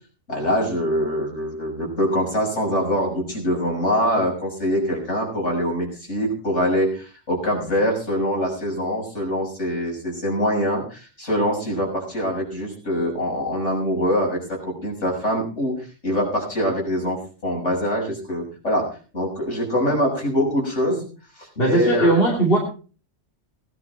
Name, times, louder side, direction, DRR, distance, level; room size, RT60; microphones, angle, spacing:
voice 1, 0.3-15.8 16.0-18.9 19.1-21.0 21.4-22.1, equal, 65° left, -1 dB, 6.8 m, -24 dB
voice 2, 21.6-22.6, right 1 dB, 50° left, -1 dB, 2.9 m, -18 dB
18.5 x 11.0 x 4.4 m, 0.37 s
omnidirectional pair, 1.3 m